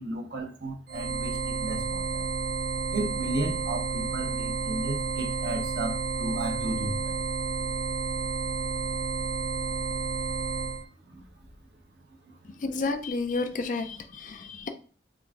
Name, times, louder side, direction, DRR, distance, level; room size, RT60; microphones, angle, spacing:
voice 1, 0.0-2.3 2.9-7.2 11.0-11.4 12.2-12.6, right 1 dB, 65° right, 0.8 m, -34 dB
sound 1, 0.9-10.8, right 4 dB, 50° right, 0.4 m, -31 dB
voice 2, 12.4-14.7, left 3 dB, 45° left, 0.4 m, -31 dB
3.7 x 2.5 x 3.4 m
head